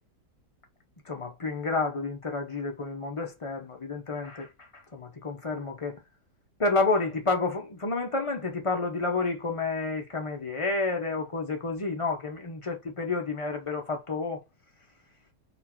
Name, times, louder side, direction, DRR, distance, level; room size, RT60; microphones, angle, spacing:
voice 1, 1.1-4.5 4.9-6.0 6.6-14.4, left 3 dB, 40° left, 0.4 m, -30 dB
4.2 x 2.4 x 4.3 m
omnidirectional pair, 1.8 m